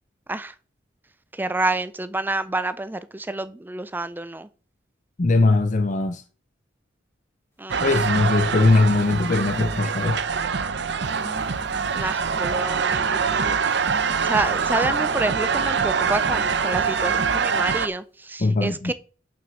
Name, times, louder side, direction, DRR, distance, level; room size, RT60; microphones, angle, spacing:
voice 1, 1.3-4.5 7.6-7.8 12.0-14.0 14.2-18.9, right 2 dB, 10° right, 0.4 m, -28 dB
voice 2, 5.2-6.2 7.8-10.2 18.4-18.9, left 3 dB, 40° left, 0.6 m, -20 dB
sound 1, 7.7-17.9, right 6 dB, 65° right, 0.7 m, -24 dB
sound 2, 8.4-10.2 10.8-12.6 13.5-15.3 15.9-17.7, right 1 dB, 15° left, 2.6 m, -44 dB
7.4 x 6.1 x 6.2 m
head